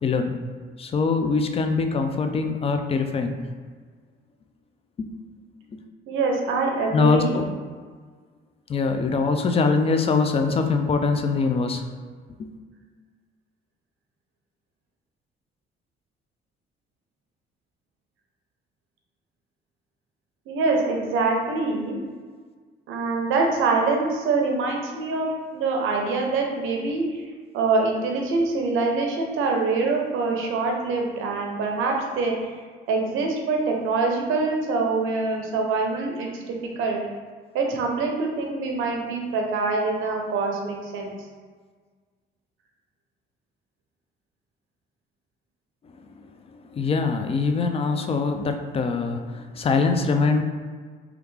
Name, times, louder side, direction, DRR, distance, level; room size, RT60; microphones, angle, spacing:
voice 1, 0.0-0.3 0.8-3.3 5.0-5.2 5.7-5.8 6.9-7.4 8.7-11.8 12.4-12.6 46.7-50.4, left 4 dB, 30° left, 6 dB, 0.3 m, -23 dB
voice 2, 6.1-7.4 20.5-22.0 22.9-27.2 27.5-32.5 32.9-36.3 36.8-37.0 37.5-41.1, right 3 dB, 85° right, 1 dB, 0.6 m, -24 dB
3.2 x 2.4 x 3.2 m, 1.5 s
cardioid pair, 90°, 20 cm